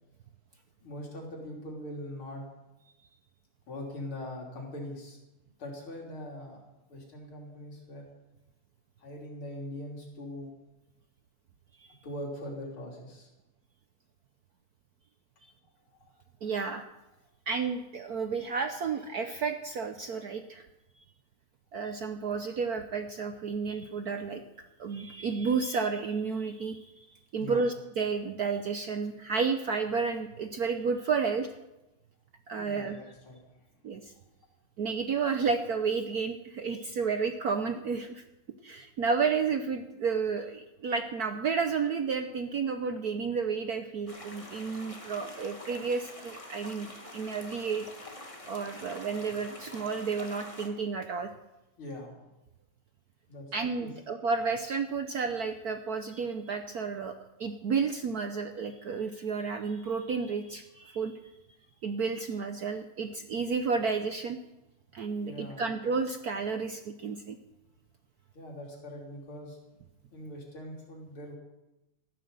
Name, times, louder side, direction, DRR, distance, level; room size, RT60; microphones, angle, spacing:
voice 1, 0.8-2.4 3.7-5.2 5.6-6.6 6.9-8.1 9.0-10.5 12.0-13.3 27.3-27.7 32.6-33.7 51.8-52.1 53.3-53.5 53.8-53.9 65.2-65.7 68.3-69.6 70.1-71.3, left 1 dB, 70° left, 0 dB, 4.0 m, -42 dB
voice 2, 16.4-16.8 17.5-20.7 21.7-24.4 24.8-27.1 27.3-31.5 32.5-33.0 33.8-34.1 34.8-38.2 38.6-47.9 48.5-51.3 53.5-61.2 61.8-64.4 64.9-67.4, right 5 dB, 60° right, 7 dB, 1.0 m, -31 dB
sound 1, 44.1-50.7, left 1 dB, 15° left, 1.5 m, -46 dB
14.5 x 11.5 x 6.8 m, 0.99 s
omnidirectional pair, 2.4 m